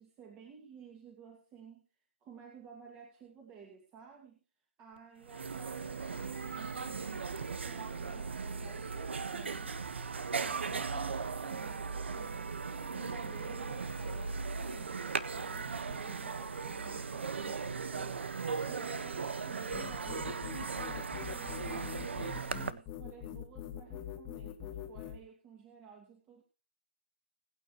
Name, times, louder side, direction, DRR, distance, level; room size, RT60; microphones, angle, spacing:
voice 1, 0.0-1.9 2.2-4.4 4.8-9.9 10.4-18.2 18.7-26.4, right 6 dB, 15° right, 1 dB, 2.3 m, -54 dB
sound 1, 5.0-5.1 5.2-22.7, right 5 dB, 70° right, 1.4 m, -38 dB
sound 2, 19.7-25.2, left 10 dB, 15° left, 1.7 m, -43 dB
21.0 x 9.3 x 3.1 m, 0.34 s
hypercardioid pair, 160°, 7 cm